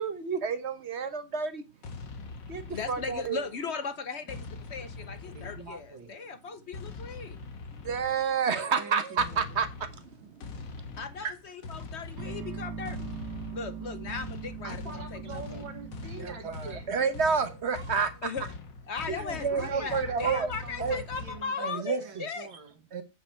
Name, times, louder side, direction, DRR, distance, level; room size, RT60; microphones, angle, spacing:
voice 1, 0.0-1.6 2.5-3.4 7.8-9.7 10.2-10.5 10.9-11.3 16.2-18.3 19.1-20.5 20.8-21.0 21.6-22.3 22.9-23.0, right 5 dB, 45° right, 1.1 m, -30 dB
sound 1, 1.8-3.6 4.3-6.0 6.7-8.4 9.2-21.4, left 3 dB, 70° left, 2.0 m, -43 dB
voice 2, 2.7-7.4 11.0-13.1 13.5-14.8 15.1-15.6 18.2-18.5 18.9-22.5, left 5 dB, 50° left, 0.8 m, -37 dB
voice 3, 5.3-6.1 8.8-9.7 14.6-16.9 19.5-22.8, right 5 dB, 80° right, 2.5 m, -44 dB
sound 2, 12.2-18.2, right 5 dB, 65° right, 2.0 m, -41 dB
8.5 x 6.9 x 4.4 m
omnidirectional pair, 2.1 m